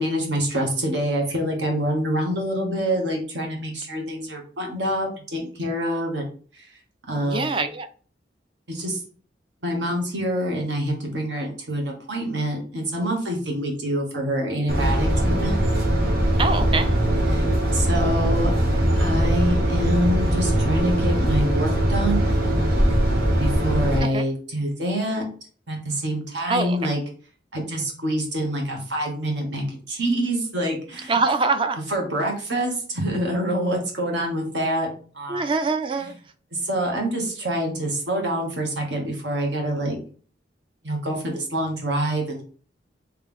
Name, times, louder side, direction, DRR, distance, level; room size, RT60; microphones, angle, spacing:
voice 1, 0.0-6.2 6.5-6.7 7.1-7.5 8.7-9.0 9.6-15.6 17.3-18.5 18.9-22.3 23.4-25.2 25.7-27.0 27.5-31.2 31.9-34.9 35.1-35.4 36.5-40.0 40.8-42.4, right 1 dB, 80° right, 1.3 m, -26 dB
voice 2, 7.3-7.9 16.4-16.9 24.0-24.2 26.5-26.9 31.1-31.8 35.3-36.2, right 3 dB, 30° right, 0.4 m, -24 dB
sound 1, 14.7-24.0, equal, 55° right, 1.0 m, -21 dB
3.3 x 3.3 x 3.6 m
head